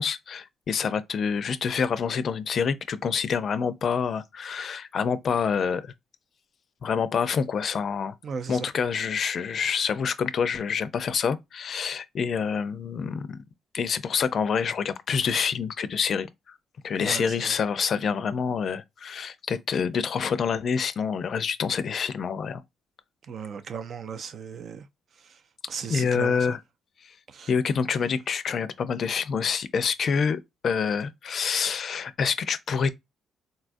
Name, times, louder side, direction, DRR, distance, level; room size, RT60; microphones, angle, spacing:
voice 1, 0.0-5.9 6.8-8.1 8.5-13.4 13.7-16.5 16.8-22.6 25.9-26.6 27.0-27.1 27.5-32.9, left 6 dB, 55° left, 0.4 m, -27 dB
voice 2, 8.2-8.6 17.0-17.5 23.3-24.9 25.2-25.4 25.7-26.6 27.3-27.5, right 6 dB, 55° right, 0.4 m, -36 dB
4.0 x 2.3 x 2.5 m
cardioid pair, 90°, 0 cm